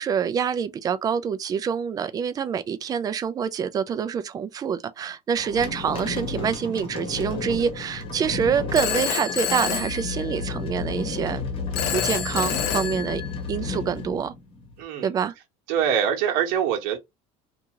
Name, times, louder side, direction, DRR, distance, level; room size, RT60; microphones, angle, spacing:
voice 1, 0.0-11.4 11.9-13.2 13.5-14.3 15.0-15.3, right 7 dB, 25° right, 0.3 m, -26 dB
sound 1, 5.4-14.8, left 4 dB, 35° left, 1.0 m, -32 dB
Telephone, 8.7-10.7 11.7-13.7, left 9 dB, 65° left, 0.5 m, -28 dB
voice 2, 14.8-15.1 15.7-17.0, right 8 dB, 70° right, 1.0 m, -24 dB
2.7 x 2.4 x 2.8 m
cardioid pair, 130°, 15 cm